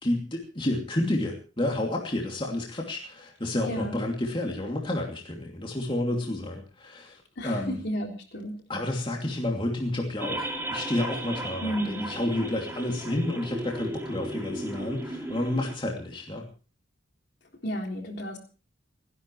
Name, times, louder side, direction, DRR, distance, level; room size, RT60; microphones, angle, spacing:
voice 1, 0.0-7.8 8.7-16.4, left 1 dB, 25° left, -1 dB, 2.7 m, -30 dB
voice 2, 3.7-4.0 7.4-8.6 11.6-12.1 17.6-18.4, equal, 55° left, 2 dB, 3.7 m, -32 dB
sound 1, 10.2-15.7, right 1 dB, 10° right, 2.5 m, -35 dB
30.0 x 11.0 x 3.2 m, 0.36 s
head